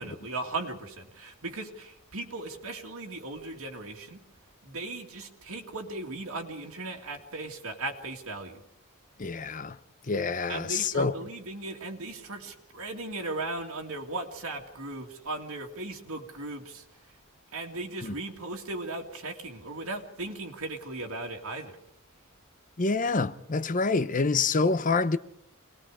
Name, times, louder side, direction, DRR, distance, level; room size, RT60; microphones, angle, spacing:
voice 1, 0.0-4.2 4.6-8.6 10.5-16.8 17.5-21.8, right 2 dB, 85° right, 2.2 m, -37 dB
voice 2, 9.2-9.8 10.1-11.1 18.0-18.1 22.8-25.2, left 4 dB, 35° left, 0.8 m, -26 dB
26.5 x 19.5 x 5.0 m
head